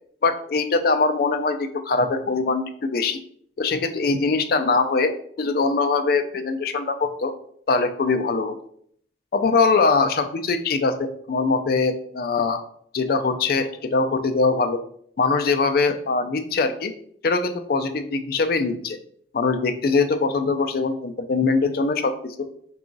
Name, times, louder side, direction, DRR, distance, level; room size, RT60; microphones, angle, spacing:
voice 1, 0.2-3.2 3.6-7.3 7.7-8.6 9.3-12.6 12.9-14.8 15.2-16.9 17.2-19.0 19.3-22.5, left 4 dB, 50° left, 8 dB, 0.4 m, -22 dB
3.8 x 2.3 x 3.8 m, 0.63 s
head